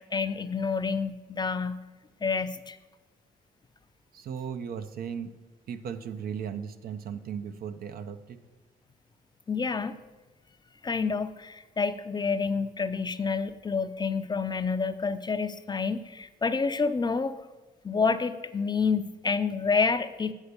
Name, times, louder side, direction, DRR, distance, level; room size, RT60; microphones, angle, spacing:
voice 1, 0.1-1.8 2.2-2.8 9.5-10.0 10.8-17.4 17.8-20.3, left 5 dB, 25° left, 10 dB, 0.5 m, -28 dB
voice 2, 4.1-5.3 5.7-8.4, right 7 dB, 65° right, 9 dB, 0.6 m, -36 dB
8.2 x 4.4 x 6.7 m, 1.2 s
supercardioid pair, 65°, 16 cm